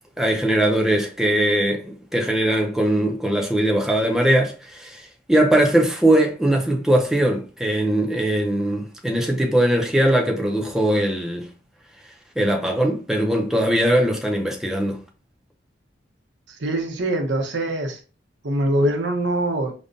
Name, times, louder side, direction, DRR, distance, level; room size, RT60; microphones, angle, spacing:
voice 1, 0.2-11.5 12.4-15.0, right 1 dB, 5° right, 0.4 m, -20 dB
voice 2, 16.5-18.0 18.4-19.7, right 1 dB, 75° right, 0.8 m, -23 dB
5.1 x 2.1 x 2.6 m
head